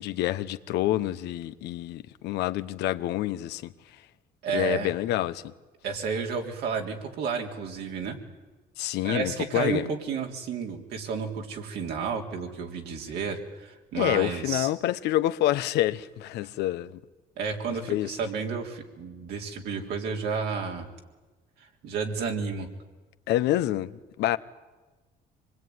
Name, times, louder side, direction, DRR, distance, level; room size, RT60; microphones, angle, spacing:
voice 1, 0.0-3.7 4.5-5.5 8.8-9.8 13.9-17.0 17.9-18.1 23.3-23.9 24.2-24.4, left 14 dB, 80° left, 1.0 m, -27 dB
voice 2, 4.4-4.9 5.8-8.2 9.0-14.7 17.4-20.9 21.6-22.7, right 5 dB, 75° right, 3.6 m, -31 dB
25.5 x 20.5 x 9.6 m
cardioid pair, 110°, 17 cm